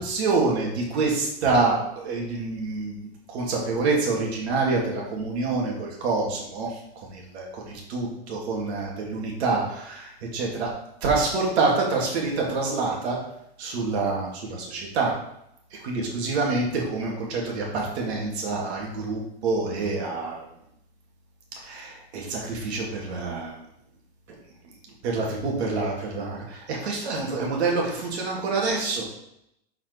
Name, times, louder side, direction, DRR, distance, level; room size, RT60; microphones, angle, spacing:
voice 1, 0.0-3.0 3.3-6.8 7.1-10.7 11.0-13.2 13.6-15.1 15.8-20.4 21.6-23.6 25.0-29.2, right 3 dB, 70° right, -2 dB, 2.5 m, -27 dB
7.0 x 5.7 x 4.6 m, 0.78 s
supercardioid pair, 140°, 33 cm